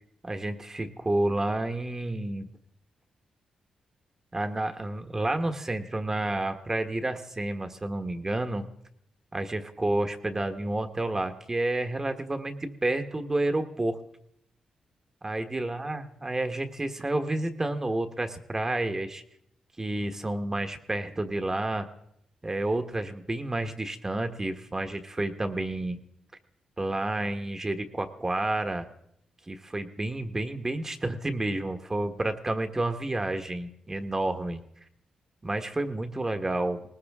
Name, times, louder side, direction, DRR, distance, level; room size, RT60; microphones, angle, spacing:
voice 1, 0.2-2.5 4.3-8.7 9.3-14.0 15.2-19.2 19.8-21.9 22.4-26.0 26.8-28.9 29.5-34.6 35.4-36.9, right 2 dB, 25° right, 7 dB, 1.3 m, -30 dB
19.0 x 19.0 x 3.6 m, 0.75 s
cardioid pair, 80°, 2 cm